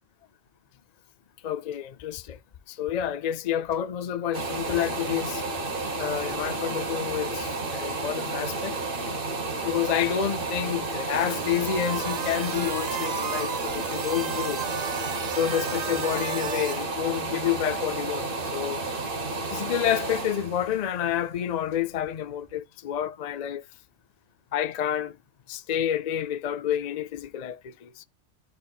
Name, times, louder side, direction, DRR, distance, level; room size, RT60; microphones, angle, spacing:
voice 1, 1.4-2.4 2.7-5.4 6.0-8.8 9.6-14.6 15.4-18.3 18.5-18.8 19.5-23.6 24.5-25.1 25.5-28.0, left 10 dB, 65° left, 0.4 m, -29 dB
sound 1, 4.3-22.0 22.5-22.6, right 3 dB, 45° right, 1.3 m, -32 dB
sound 2, 11.1-16.8, right 7 dB, 75° right, 0.3 m, -34 dB
12.0 x 4.1 x 2.3 m
omnidirectional pair, 1.4 m